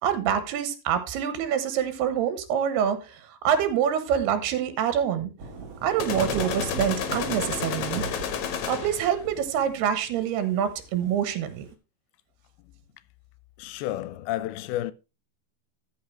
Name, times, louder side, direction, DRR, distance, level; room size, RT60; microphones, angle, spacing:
voice 1, 0.0-5.3 5.8-8.0 8.7-11.7, right 9 dB, 90° right, 3.3 m, -26 dB
Thunder / Rain, 5.4-11.7, right 4 dB, 50° right, 2.0 m, -38 dB
sound 1, 6.0-9.1, left 8 dB, 60° left, 2.0 m, -31 dB
voice 2, 13.6-14.9, left 14 dB, 80° left, 2.5 m, -31 dB
13.5 x 5.8 x 4.5 m
omnidirectional pair, 4.5 m